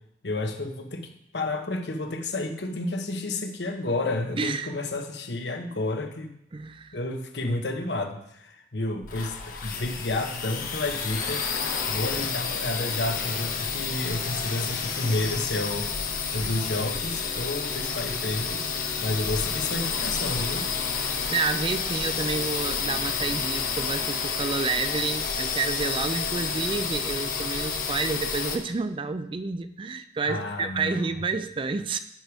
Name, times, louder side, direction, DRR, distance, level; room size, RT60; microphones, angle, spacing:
voice 1, 0.2-6.3 6.9-15.9 16.3-18.6 19.0-20.7 30.2-31.1, left 2 dB, 70° left, 5 dB, 1.1 m, -31 dB
voice 2, 4.4-4.7 6.5-7.0 21.3-32.0, right 4 dB, 30° right, 11 dB, 0.4 m, -29 dB
sound 1, 9.0-28.6, left 5 dB, 50° left, 1.1 m, -30 dB
10.5 x 5.2 x 4.7 m, 0.75 s
head